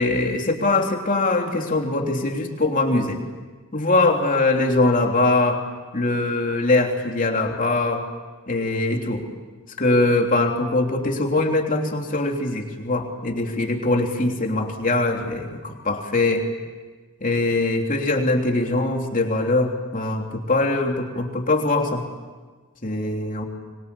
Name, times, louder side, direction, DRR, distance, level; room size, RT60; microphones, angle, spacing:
voice 1, 0.0-3.2 3.7-5.6 5.9-8.1 8.5-9.2 9.8-16.5 17.2-22.1 22.8-23.4, left 2 dB, 40° left, 2 dB, 3.3 m, -22 dB
26.0 x 24.0 x 8.7 m, 1.4 s
head